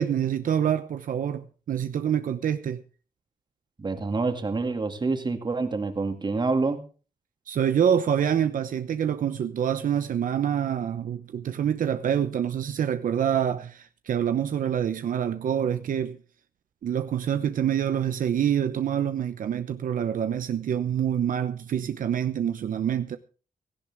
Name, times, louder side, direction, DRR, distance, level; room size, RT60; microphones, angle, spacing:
voice 1, 0.0-2.8 7.5-16.2 16.8-23.2, right 9 dB, 75° right, 0.9 m, -26 dB
voice 2, 3.8-6.8, right 3 dB, 30° right, 2.3 m, -27 dB
17.0 x 15.5 x 3.6 m
cardioid pair, 110°, 14 cm